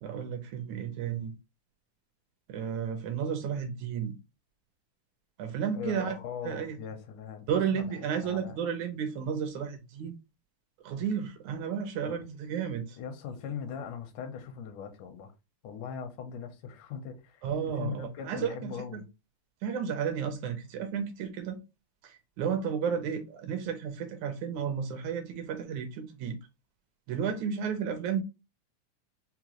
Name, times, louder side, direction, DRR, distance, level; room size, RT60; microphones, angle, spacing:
voice 1, 0.0-1.3 2.5-4.2 5.4-6.2 6.4-6.8 7.5-10.1 10.8-13.0 17.4-19.0 19.6-21.6 22.0-26.4 27.1-28.2, right 7 dB, 75° right, 1.9 m, -32 dB
voice 2, 5.7-8.6 12.1-12.3 13.0-15.3 15.6-19.1, left 7 dB, 80° left, 2.3 m, -40 dB
5.8 x 2.2 x 2.9 m
omnidirectional pair, 3.6 m